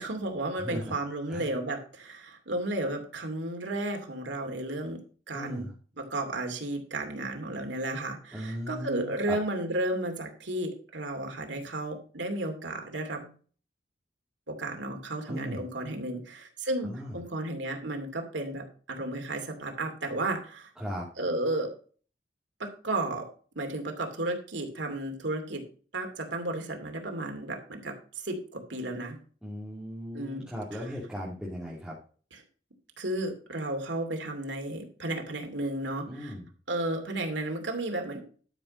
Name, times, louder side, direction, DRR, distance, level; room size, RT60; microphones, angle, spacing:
voice 1, 0.0-5.0 5.3-5.7 6.0-13.3 14.5-20.7 21.2-21.7 22.6-23.3 23.6-25.6 25.9-27.9 28.2-29.2 30.1-30.4 33.0-36.3 36.7-38.2, right 1 dB, 90° right, 4 dB, 2.5 m, -33 dB
voice 2, 0.6-0.9 1.3-1.5 5.3-5.7 8.3-9.4 15.3-15.6 16.8-17.2 20.8-21.1 29.4-32.0 36.1-36.5, equal, 5° right, -7 dB, 2.5 m, -37 dB
12.0 x 5.8 x 5.2 m, 0.41 s
head